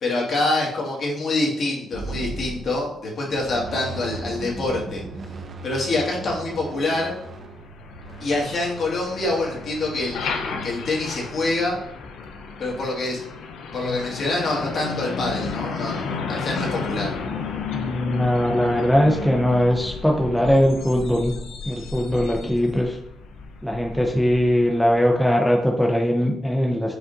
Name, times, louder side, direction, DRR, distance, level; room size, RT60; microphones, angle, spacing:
voice 1, 0.0-5.0 5.6-7.1 8.2-11.8 12.6-13.2 13.7-17.1, left 2 dB, 55° left, -2 dB, 1.6 m, -26 dB
sound 1, 1.9-3.0 3.3-10.3, right 2 dB, 45° right, 0.5 m, -37 dB
Truck, 7.3-25.0, left 5 dB, 80° left, 0.6 m, -33 dB
voice 2, 17.7-21.3 21.7-23.0 23.6-27.0, equal, 5° left, 0 dB, 0.6 m, -20 dB
4.9 x 2.5 x 3.8 m, 0.76 s
cardioid pair, 90°, 0 cm